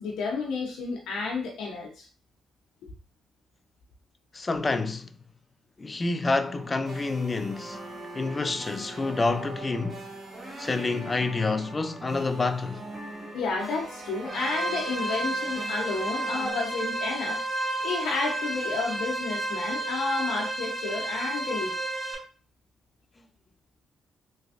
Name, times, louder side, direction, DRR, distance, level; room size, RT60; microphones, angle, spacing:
voice 1, 0.0-2.1 13.3-17.4 17.8-21.7, left 4 dB, 80° left, 0.7 m, -31 dB
voice 2, 4.3-5.1 5.8-7.8 8.1-10.1 10.6-12.9, left 3 dB, 25° left, 0.4 m, -28 dB
sound 1, 6.1-16.5, right 2 dB, 20° right, 1.8 m, -42 dB
sound 2, 14.3-22.1, right 2 dB, 5° left, 1.3 m, -31 dB
3.4 x 3.1 x 2.5 m
cardioid pair, 90°, 0 cm